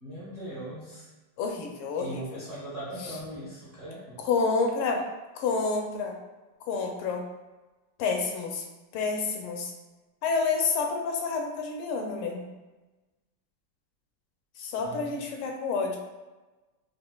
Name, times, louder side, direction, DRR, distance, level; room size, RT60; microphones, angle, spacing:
voice 1, 0.0-1.1 2.0-4.2 14.8-15.4, right 1 dB, 50° right, -9 dB, 0.7 m, -40 dB
voice 2, 1.4-2.2 4.2-5.0 5.3-6.2 6.7-7.2 8.0-8.6 8.9-9.7 10.2-12.4 14.6-16.0, left 4 dB, 80° left, 1 dB, 1.4 m, -28 dB
5.0 x 2.4 x 2.3 m, 1.1 s
omnidirectional pair, 2.4 m